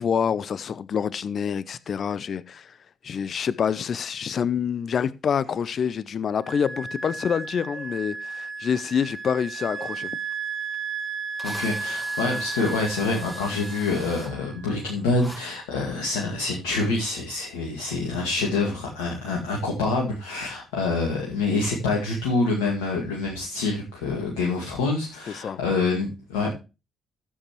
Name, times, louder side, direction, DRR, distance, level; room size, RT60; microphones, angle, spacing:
voice 1, 0.0-2.7 3.0-10.1 25.4-25.6, left 7 dB, 50° left, 0.7 m, -27 dB
sound 1, 5.4-5.7 7.7-8.1 9.7-10.1 11.4-12.1, right 5 dB, 60° right, 5.0 m, -47 dB
Wind instrument woodwind instrument, 6.4-14.7, right 4 dB, 40° right, 1.4 m, -34 dB
Drill, 10.7-10.8 11.4-14.3 15.2-15.4, equal, 5° left, 4.9 m, -42 dB
voice 2, 11.4-26.5, left 3 dB, 75° left, 2.0 m, -26 dB
13.5 x 7.9 x 3.1 m
figure-of-eight pair, 45°, 0 cm